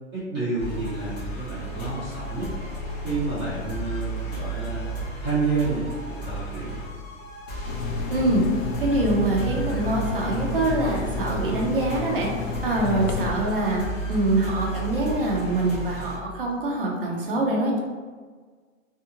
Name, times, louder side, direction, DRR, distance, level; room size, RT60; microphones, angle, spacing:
voice 1, 0.1-2.5 3.0-4.9 5.2-6.8 12.8-13.1, right 3 dB, 15° right, -14 dB, 0.9 m, -29 dB
sound 1, 0.6-16.2, right 2 dB, 30° left, 0.6 m, -33 dB
sound 2, 7.7-13.3, left 3 dB, 85° left, 0.5 m, -31 dB
voice 2, 8.1-8.4 8.8-12.3 12.6-13.8 14.1-17.8, right 1 dB, 45° right, -2 dB, 0.6 m, -24 dB
2.7 x 2.3 x 2.8 m, 1.5 s
hypercardioid pair, 175°, 40 cm